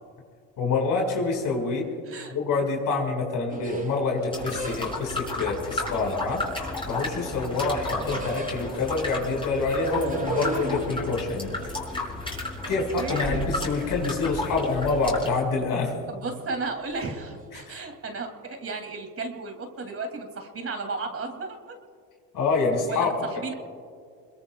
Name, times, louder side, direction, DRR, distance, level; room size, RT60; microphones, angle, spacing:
voice 1, 0.6-1.9 2.3-6.4 6.9-11.6 12.7-16.0 17.5-17.8 22.3-23.1, left 3 dB, 60° left, 0 dB, 4.8 m, -26 dB
sound 1, 3.5-5.2 5.9-7.2 7.5-9.0 9.7-13.4 13.7-14.4 14.7-15.3 15.6-15.9 16.9-17.3, right 2 dB, 20° right, 4.9 m, -37 dB
sound 2, 4.3-15.3, left 2 dB, 15° left, 5.6 m, -33 dB
voice 2, 12.6-13.5 16.1-21.8 22.9-23.5, right 3 dB, 35° right, 4 dB, 2.6 m, -34 dB
26.5 x 22.0 x 2.3 m, 2.2 s
supercardioid pair, 85°, 38 cm